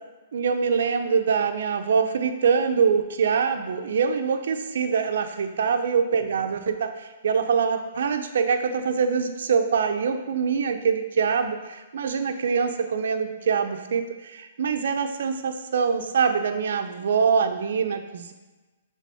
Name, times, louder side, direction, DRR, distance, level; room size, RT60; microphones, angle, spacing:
voice 1, 0.3-18.3, right 6 dB, 75° right, 7 dB, 0.6 m, -24 dB
6.8 x 3.5 x 4.8 m, 1.2 s
hypercardioid pair, 150°, 0 cm